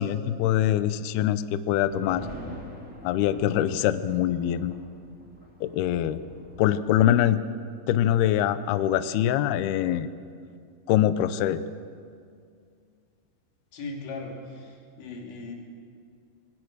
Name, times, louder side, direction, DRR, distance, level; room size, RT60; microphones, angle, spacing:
voice 1, 0.0-2.3 3.0-4.7 5.6-6.2 6.6-7.4 7.9-10.1 10.9-11.6, left 11 dB, 85° left, 13 dB, 2.2 m, -24 dB
sound 1, 1.8-7.3, left 1 dB, 20° left, 2.4 m, -45 dB
voice 2, 13.7-15.6, left 3 dB, 70° left, 1 dB, 5.0 m, -38 dB
26.0 x 20.5 x 6.4 m, 2.3 s
omnidirectional pair, 5.5 m